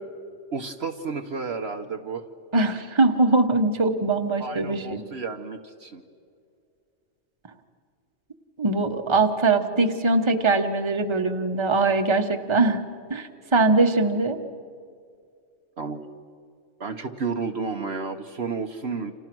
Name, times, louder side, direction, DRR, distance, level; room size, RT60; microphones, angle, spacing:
voice 1, 0.5-2.2 4.4-6.0 15.8-16.0 16.8-19.1, right 4 dB, 55° right, 5 dB, 1.3 m, -31 dB
voice 2, 2.5-5.0 8.6-12.8 13.1-14.4, right 3 dB, 20° right, 5 dB, 1.3 m, -22 dB
30.0 x 27.5 x 6.2 m, 2.3 s
omnidirectional pair, 1.4 m